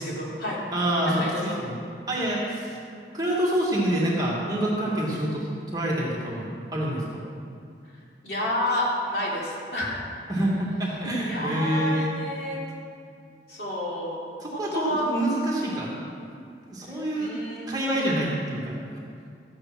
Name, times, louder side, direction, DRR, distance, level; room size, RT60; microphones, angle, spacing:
voice 1, 0.0-0.6 1.0-1.6 8.2-10.0 11.2-12.6 13.5-14.2 14.5-15.1 15.5-16.0 16.9-18.5, left 1 dB, 60° left, -5 dB, 3.5 m, -30 dB
voice 2, 0.7-1.7 2.1-2.8 3.1-7.2 10.3-12.1 14.4-16.0 16.7-17.3 17.7-18.7, right 1 dB, 20° right, -5 dB, 2.3 m, -27 dB
14.0 x 8.7 x 6.0 m, 2.3 s
head